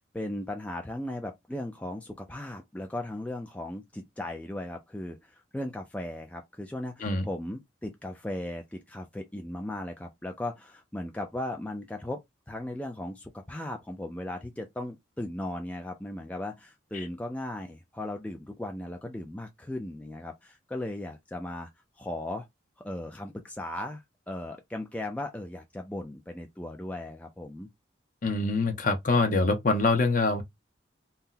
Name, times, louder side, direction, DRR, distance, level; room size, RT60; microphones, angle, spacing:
voice 1, 0.0-21.7 22.0-22.5 22.8-27.7, left 1 dB, 5° left, 0.3 m, -37 dB
voice 2, 28.2-30.4, left 3 dB, 45° left, 0.7 m, -24 dB
2.7 x 2.1 x 3.7 m
head